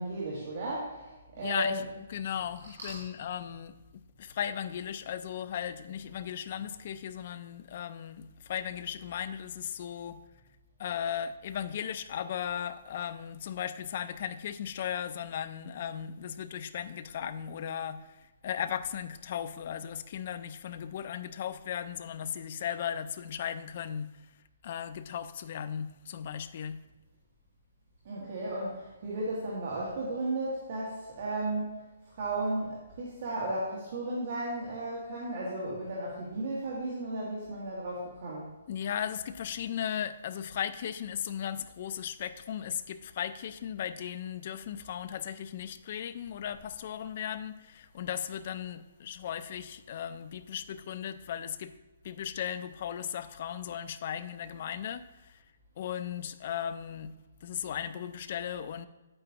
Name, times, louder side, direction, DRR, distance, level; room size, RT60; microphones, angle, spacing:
voice 1, 0.0-1.8 2.8-2.9 28.0-31.7 32.1-38.5, right 2 dB, 40° right, -6 dB, 1.8 m, -34 dB
voice 2, 1.4-10.2 10.8-24.1 24.6-26.8 38.7-51.7 52.0-55.4 55.8-57.1 57.4-58.9, left 9 dB, 35° left, 12 dB, 0.4 m, -36 dB
8.8 x 8.2 x 2.9 m, 1.1 s
hypercardioid pair, 175°, 0 cm